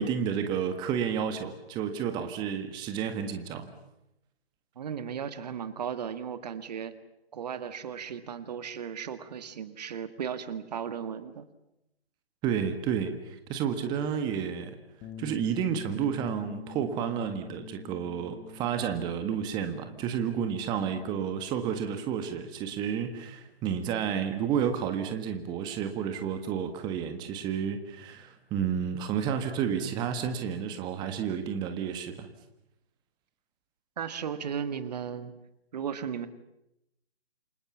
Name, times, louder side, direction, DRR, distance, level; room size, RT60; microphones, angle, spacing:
voice 1, 0.0-3.7 12.4-14.7 15.2-32.3, right 8 dB, 15° right, 7 dB, 1.6 m, -31 dB
voice 2, 4.8-6.9 7.3-11.5 34.0-35.3 35.7-36.3, right 7 dB, 40° right, 12 dB, 1.9 m, -36 dB
Bass guitar, 15.0-21.3, left 9 dB, 15° left, 1.3 m, -46 dB
28.5 x 24.5 x 7.3 m, 0.86 s
figure-of-eight pair, 145°, 32 cm